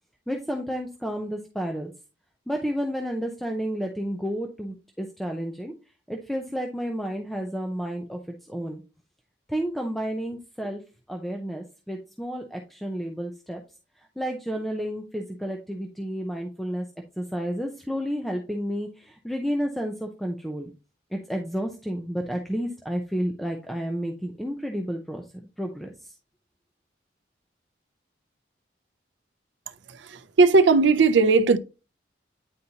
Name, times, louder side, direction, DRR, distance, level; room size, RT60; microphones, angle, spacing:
voice 1, 0.3-1.9 2.5-5.7 6.1-8.2 8.5-8.8 9.5-10.8 11.1-13.6 14.2-16.8 17.2-20.7 21.1-26.1, equal, ahead, 0.6 m, -31 dB
voice 2, 29.9-31.6, right 4 dB, 75° right, 0.5 m, -18 dB
9.4 x 4.1 x 2.8 m
head